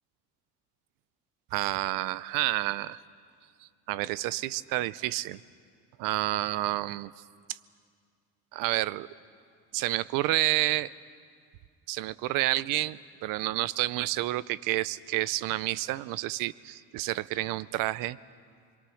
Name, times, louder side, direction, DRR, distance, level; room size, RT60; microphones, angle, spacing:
voice 1, 1.5-3.0 3.9-5.4 6.0-7.1 7.5-7.6 8.5-9.1 9.7-10.9 11.9-18.2, right 17 dB, 80° right, 19 dB, 0.6 m, -29 dB
27.0 x 22.5 x 6.4 m, 2.2 s
cardioid pair, 155°, 32 cm